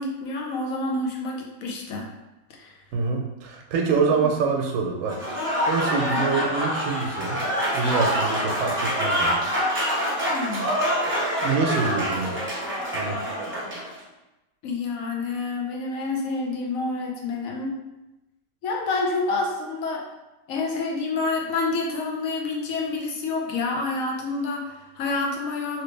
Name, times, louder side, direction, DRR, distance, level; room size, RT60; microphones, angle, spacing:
voice 1, 0.0-2.1 2.6-2.8 4.2-4.3 6.1-6.2 10.3-10.7 14.6-17.7 18.6-20.0 20.5-25.8, left 3 dB, 80° left, 0 dB, 1.1 m, -28 dB
voice 2, 2.9-5.2 5.7-7.4 7.7-9.4 11.4-12.4 12.9-13.2, right 5 dB, 75° right, 1 dB, 0.9 m, -25 dB
Applause / Crowd, 5.1-13.9, equal, 15° right, 0.5 m, -26 dB
3.0 x 2.9 x 3.2 m, 0.99 s
omnidirectional pair, 1.4 m